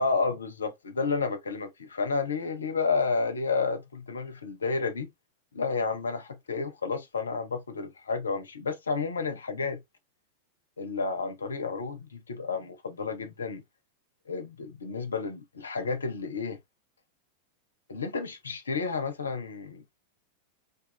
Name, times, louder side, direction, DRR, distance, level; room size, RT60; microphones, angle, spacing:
voice 1, 0.0-5.1 5.5-9.8 10.8-13.6 14.3-16.6 17.9-19.8, left 4 dB, 70° left, 0.5 m, -31 dB
2.4 x 2.4 x 2.7 m
figure-of-eight pair, 90°, 0 cm